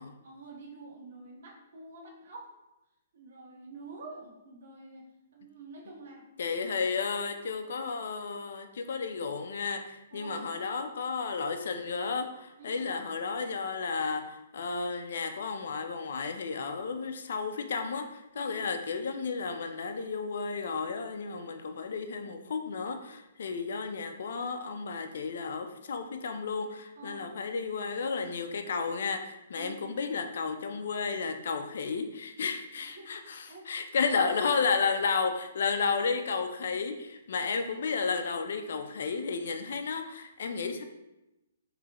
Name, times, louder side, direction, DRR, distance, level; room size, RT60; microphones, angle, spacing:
voice 1, 0.2-2.5 3.1-5.0 5.3-6.2 7.0-7.1 10.1-10.5 12.6-12.9 18.3-18.7 27.0-27.4 29.5-30.0 32.7-33.1 33.5-33.7 34.0-34.1, right 3 dB, 60° right, -1 dB, 1.1 m, -47 dB
voice 2, 6.4-40.8, left 5 dB, 70° left, 6 dB, 0.4 m, -32 dB
3.7 x 3.1 x 2.9 m, 0.94 s
hypercardioid pair, 145°, 0 cm